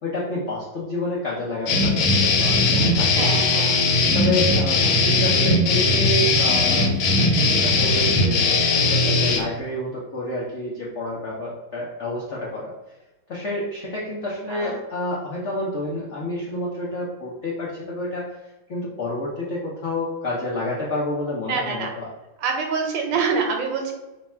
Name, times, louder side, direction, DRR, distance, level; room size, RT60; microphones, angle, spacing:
voice 1, 0.0-3.3 3.5-3.6 4.1-12.7 13.3-22.1, left 1 dB, 70° left, -5 dB, 0.7 m, -29 dB
sound 1, 1.7-9.4, left 2 dB, 85° left, 1.4 m, -19 dB
voice 2, 3.1-3.9 4.9-5.0 14.5-14.8 21.4-21.9 22.4-23.9, right 5 dB, 75° right, 2 dB, 1.4 m, -26 dB
3.3 x 2.3 x 4.2 m, 1.1 s
omnidirectional pair, 2.1 m